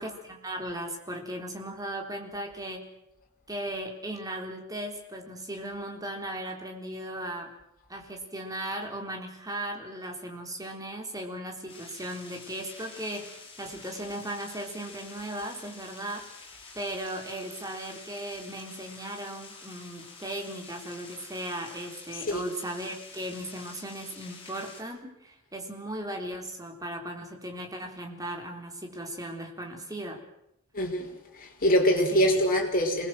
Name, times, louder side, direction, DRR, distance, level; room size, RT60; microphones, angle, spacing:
voice 1, 0.0-2.9 3.5-7.5 7.9-16.3 16.7-30.2 32.1-32.4, right 1 dB, 15° right, 3.8 m, -37 dB
sound 1, 11.7-24.8, left 4 dB, 25° left, 7.8 m, -48 dB
voice 2, 22.1-22.5 30.7-33.1, left 1 dB, 40° left, 4.9 m, -25 dB
26.5 x 20.5 x 7.7 m
head